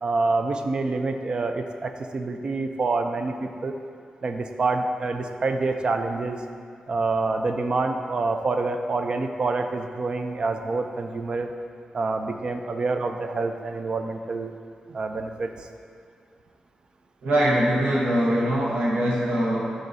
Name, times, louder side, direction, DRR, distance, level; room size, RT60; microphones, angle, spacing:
voice 1, 0.0-3.7 4.2-6.4 6.9-11.5 11.9-14.5 14.9-15.7, right 3 dB, 40° right, 6 dB, 0.4 m, -27 dB
voice 2, 17.2-19.7, right 1 dB, 70° right, -5 dB, 1.0 m, -22 dB
11.0 x 3.8 x 2.7 m, 2.4 s
wide cardioid pair, 140°, 2 cm